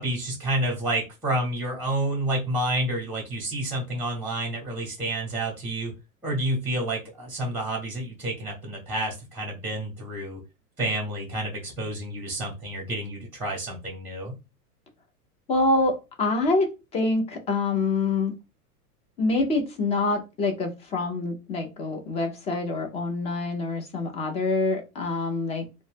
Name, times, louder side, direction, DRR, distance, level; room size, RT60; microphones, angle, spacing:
voice 1, 0.0-5.9 6.2-10.4 10.8-14.3, right 1 dB, 5° right, -1 dB, 0.9 m, -29 dB
voice 2, 15.5-18.3 19.2-25.7, left 2 dB, 15° left, 4 dB, 0.4 m, -26 dB
2.5 x 2.1 x 3.3 m, 0.27 s
figure-of-eight pair, 90°, 47 cm